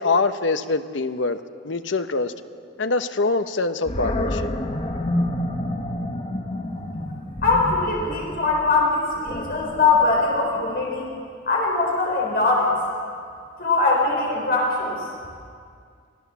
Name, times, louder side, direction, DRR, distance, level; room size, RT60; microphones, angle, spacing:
voice 1, 0.0-2.3 2.8-4.5, left 3 dB, 80° left, 10 dB, 0.9 m, -24 dB
Animal, 3.9-11.0, left 1 dB, 35° left, 1.2 m, -29 dB
voice 2, 7.4-11.1 11.4-12.8 13.6-15.1, left 3 dB, 55° left, -2 dB, 4.4 m, -21 dB
25.0 x 15.5 x 7.2 m, 2.2 s
head